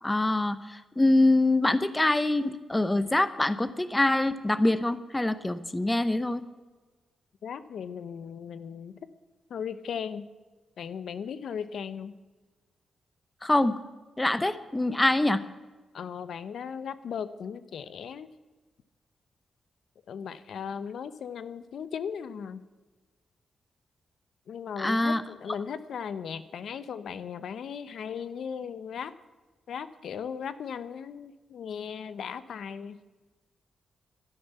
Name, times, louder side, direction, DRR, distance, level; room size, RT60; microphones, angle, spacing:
voice 1, 0.0-6.4 13.4-13.7 14.2-15.4 24.8-25.2 25.5-25.6, left 2 dB, 10° left, 13 dB, 0.7 m, -24 dB
voice 2, 7.4-9.0 9.5-10.3 10.8-12.1 15.9-18.3 20.1-22.6 24.5-29.1 29.7-33.0, left 7 dB, 70° left, 14 dB, 0.8 m, -37 dB
12.5 x 11.0 x 8.2 m, 1.2 s
cardioid pair, 120°, 0 cm